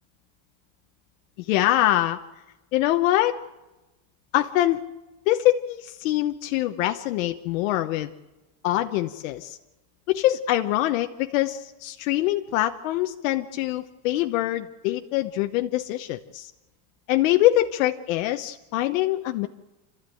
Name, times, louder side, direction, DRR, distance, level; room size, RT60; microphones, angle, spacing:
voice 1, 1.4-2.2 2.7-3.4 4.3-4.8 5.3-8.1 8.6-9.6 10.1-16.5 17.1-19.5, left 14 dB, 90° left, 6 dB, 1.0 m, -24 dB
28.5 x 13.5 x 9.1 m, 1.1 s
cardioid pair, 175°, 38 cm